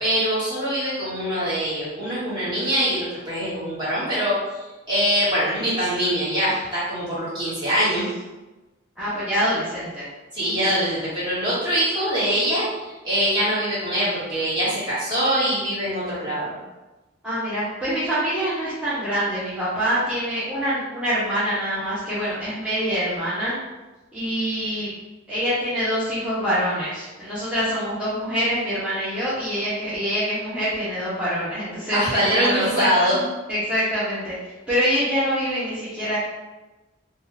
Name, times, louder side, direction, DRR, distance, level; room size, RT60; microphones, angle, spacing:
voice 1, 0.0-8.1 10.3-16.6 31.9-33.2, equal, 25° right, -11 dB, 1.5 m, -23 dB
voice 2, 9.0-10.1 17.2-23.5 24.1-24.9 25.3-32.0 32.3-33.1 33.5-34.3 34.7-36.2, equal, 5° right, -14 dB, 0.8 m, -25 dB
2.6 x 2.3 x 3.2 m, 1.1 s
head